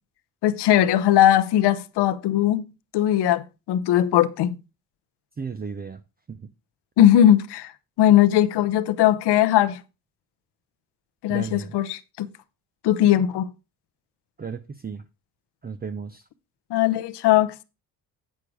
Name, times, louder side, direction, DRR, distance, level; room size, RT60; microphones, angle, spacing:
voice 1, 0.4-2.7 2.9-4.5 7.0-7.7 8.0-9.8 11.2-12.3 12.8-13.5 16.7-17.6, left 12 dB, 80° left, 0.9 m, -19 dB
voice 2, 5.4-6.0 6.3-6.4 11.3-11.7 14.4-15.0 15.6-16.2, right 5 dB, 25° right, 0.6 m, -34 dB
8.4 x 6.5 x 4.8 m
cardioid pair, 75°, 40 cm